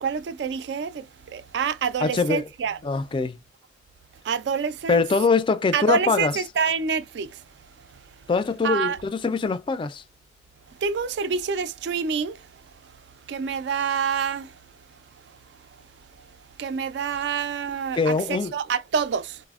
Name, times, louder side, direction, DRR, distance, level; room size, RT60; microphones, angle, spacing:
voice 1, 0.0-2.8 4.2-5.0 5.7-7.3 8.6-9.0 10.8-12.4 13.3-14.5 16.6-19.4, right 6 dB, 70° right, 0.3 m, -27 dB
voice 2, 2.0-2.5 2.8-3.4 4.9-6.4 8.3-10.0 17.9-18.5, left 4 dB, 30° left, 0.3 m, -23 dB
4.0 x 2.0 x 2.3 m
head